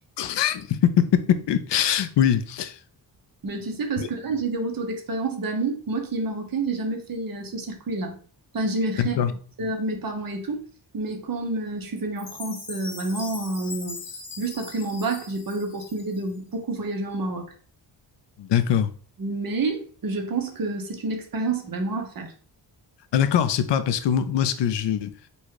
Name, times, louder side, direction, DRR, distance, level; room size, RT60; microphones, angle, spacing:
voice 1, 0.2-2.8 4.0-4.1 9.0-9.3 18.4-18.9 23.1-25.1, left 9 dB, 70° left, 0.6 m, -22 dB
voice 2, 3.4-8.2 8.5-9.2 9.6-10.6 10.9-14.0 14.4-17.5 19.2-22.3, right 3 dB, 50° right, 1.0 m, -29 dB
Chime, 12.2-16.4, left 4 dB, 50° left, 1.0 m, -40 dB
4.1 x 2.3 x 4.7 m
wide cardioid pair, 105°, 43 cm